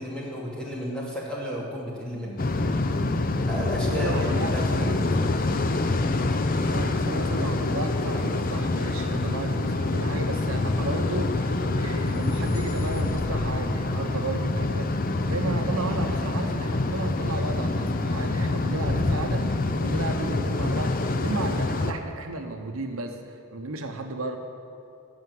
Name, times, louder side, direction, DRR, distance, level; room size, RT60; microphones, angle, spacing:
voice 1, 0.0-2.4 3.5-5.0, equal, 5° left, -5 dB, 2.5 m, -33 dB
sound 1, 2.4-21.9, left 2 dB, 40° left, 0.6 m, -26 dB
voice 2, 3.9-5.4 6.5-24.4, right 2 dB, 70° right, 4 dB, 1.0 m, -33 dB
sound 2, 10.5-13.5, equal, 70° left, 1.4 m, -36 dB
15.5 x 6.0 x 9.5 m, 2.5 s
head